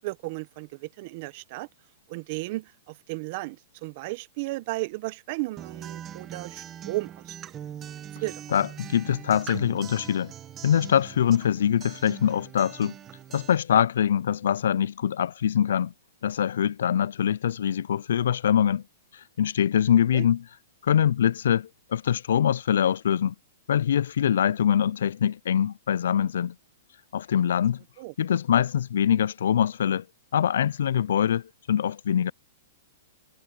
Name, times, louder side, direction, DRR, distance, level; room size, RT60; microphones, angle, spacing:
voice 1, 0.0-1.7 2.1-7.4 8.2-8.4 20.1-20.3 28.0-28.1, right 22 dB, 40° right, 0.9 m, -34 dB
Acoustic guitar, 5.6-13.6, right 10 dB, 20° right, 1.2 m, -42 dB
voice 2, 8.5-10.3 10.6-12.9 13.3-15.9 16.2-18.8 19.1-20.4 20.8-23.3 23.7-26.5 27.1-27.8 28.2-30.0 30.3-32.3, left 9 dB, 75° left, 0.3 m, -24 dB
hypercardioid pair, 155°, 0 cm